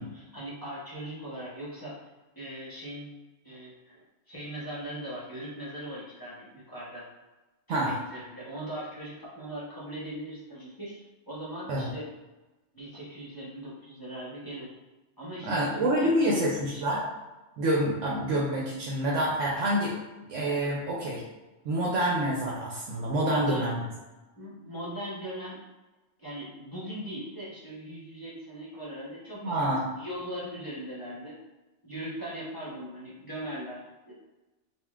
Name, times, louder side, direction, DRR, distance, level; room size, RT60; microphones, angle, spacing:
voice 1, 0.0-2.0 2.4-3.1 3.4-7.1 7.7-12.1 12.7-14.7 15.2-16.8 23.3-23.7 24.4-25.6 26.2-29.6 30.0-31.4 31.8-34.1, right 1 dB, 20° left, -8 dB, 0.9 m, -40 dB
voice 2, 15.4-17.0 17.6-19.9 20.3-21.2 21.6-23.8 29.4-29.9, right 1 dB, 75° right, -4 dB, 1.0 m, -27 dB
5.2 x 2.4 x 2.4 m, 1.1 s
omnidirectional pair, 1.3 m